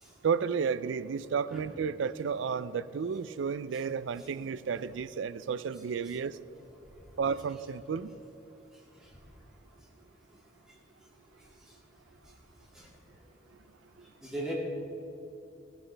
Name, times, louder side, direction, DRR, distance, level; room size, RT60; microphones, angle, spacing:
voice 1, 0.2-6.4 7.2-8.2, right 6 dB, 85° right, 0.4 m, -32 dB
voice 2, 14.2-14.5, right 1 dB, 5° right, 2.3 m, -38 dB
16.0 x 11.0 x 3.4 m
head